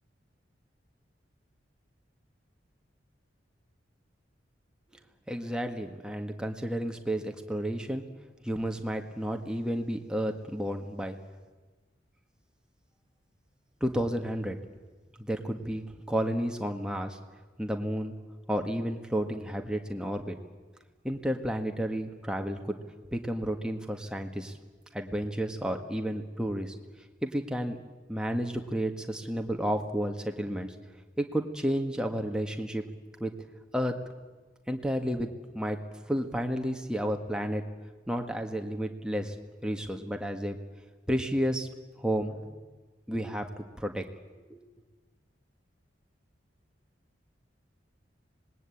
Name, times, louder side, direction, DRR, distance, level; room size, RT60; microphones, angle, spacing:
voice 1, 5.3-8.0 8.4-11.2 13.8-14.6 15.2-17.2 17.6-18.1 18.5-20.3 21.0-22.8 23.1-24.6 24.9-26.8 27.2-27.8 28.1-30.7 31.2-32.8 33.2-33.3 33.7-34.0 34.7-35.3 35.5-35.8 36.1-37.6 38.1-39.4 39.6-40.6 41.1-41.7 42.0-42.6 43.1-44.0 44.5-44.6, equal, 5° right, 4 dB, 1.7 m, -31 dB
26.0 x 20.5 x 8.6 m, 1.3 s
head